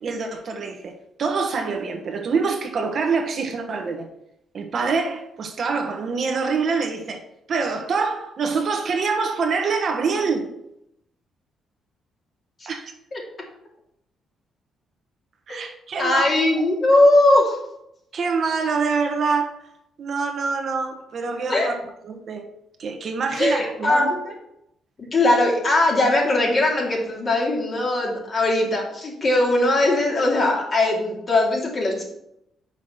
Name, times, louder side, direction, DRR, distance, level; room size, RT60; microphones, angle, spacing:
voice 1, 0.0-0.9 1.2-4.1 4.5-7.2 7.5-10.5 12.7-12.9 15.5-16.4 18.1-19.6 20.0-21.7 22.0-22.4 22.8-24.1, right 4 dB, 55° right, 1.2 m, -25 dB
voice 2, 16.0-17.6 21.5-21.8 23.4-24.2 25.1-32.0, left 2 dB, 40° left, 2.5 m, -20 dB
5.8 x 4.8 x 6.1 m
cardioid pair, 90°, 0 cm